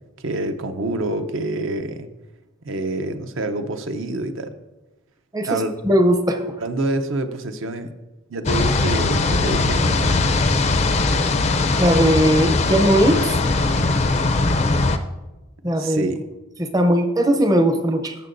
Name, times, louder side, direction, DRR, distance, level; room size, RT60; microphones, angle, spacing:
voice 1, 0.2-2.1 2.6-4.6 5.4-5.7 6.6-7.9 8.3-10.5 15.8-16.2, right 2 dB, 60° right, 9 dB, 0.6 m, -27 dB
voice 2, 5.3-6.4 11.8-13.4 15.6-16.1 16.6-18.2, equal, 15° right, 8 dB, 0.6 m, -19 dB
sound 1, 8.5-15.0, left 3 dB, 30° left, 0.4 m, -20 dB
17.0 x 6.6 x 2.6 m, 1.1 s
head